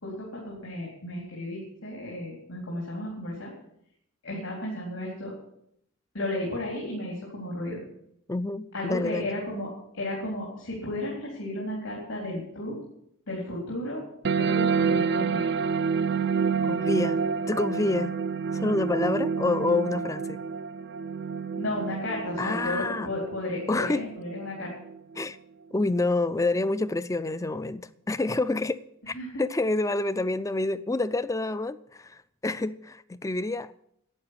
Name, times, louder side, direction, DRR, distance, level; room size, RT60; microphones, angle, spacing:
voice 1, 0.0-3.5 4.2-5.3 6.1-7.8 8.7-9.7 10.0-12.8 13.3-14.0 14.3-15.6 21.6-24.7 29.1-29.4, left 1 dB, 75° left, 4.0 m, -33 dB
voice 2, 8.3-9.4 16.7-18.1 18.5-20.4 22.4-23.1 23.7-24.0 25.2-25.4 25.7-33.7, left 2 dB, 15° left, 0.4 m, -28 dB
sound 1, 14.2-25.2, right 5 dB, 50° right, 0.4 m, -28 dB
12.0 x 8.9 x 8.4 m
head